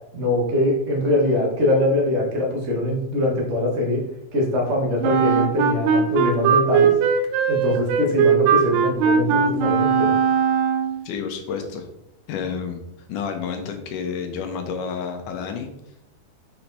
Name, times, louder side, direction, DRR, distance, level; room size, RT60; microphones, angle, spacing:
voice 1, 0.1-4.0 4.3-6.9 7.5-10.2, left 1 dB, 35° right, -1 dB, 1.1 m, -22 dB
Wind instrument woodwind instrument, 5.0-11.0, right 7 dB, 85° right, 2.2 m, -19 dB
voice 2, 11.1-11.9 12.3-12.8 13.1-15.7, left 6 dB, 85° left, 5 dB, 2.5 m, -30 dB
6.4 x 4.7 x 4.0 m, 0.83 s
omnidirectional pair, 3.6 m